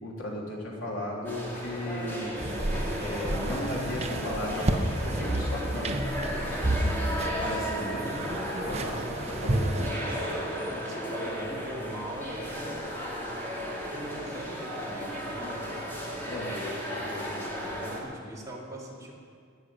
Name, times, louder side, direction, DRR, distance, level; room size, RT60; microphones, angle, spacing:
voice 1, 0.0-2.4 3.0-5.9 7.4-8.1 8.7-9.0 9.3-9.6 16.3-16.5, left 1 dB, 90° left, -3 dB, 3.5 m, -35 dB
sound 1, 1.2-18.0, equal, 10° left, 2.7 m, -35 dB
sound 2, 2.4-9.9, right 1 dB, 35° right, 1.1 m, -31 dB
voice 2, 8.6-9.0 9.9-12.6 13.9-15.7 16.1-19.1, equal, 15° right, -4 dB, 2.7 m, -41 dB
19.0 x 6.7 x 9.7 m, 2.2 s
head